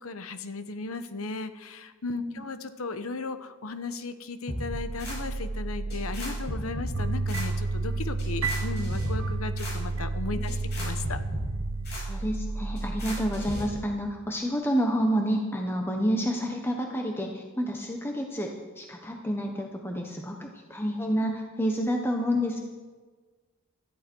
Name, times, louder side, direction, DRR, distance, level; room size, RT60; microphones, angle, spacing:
voice 1, 0.0-11.2, left 3 dB, 75° left, 11 dB, 1.0 m, -36 dB
sound 1, 4.5-13.6, right 1 dB, 50° left, 6.4 m, -33 dB
sound 2, 6.9-12.0, right 3 dB, 70° right, 0.8 m, -32 dB
voice 2, 11.9-22.6, equal, 10° left, 2 dB, 1.1 m, -29 dB
17.5 x 14.0 x 4.6 m, 1.4 s
head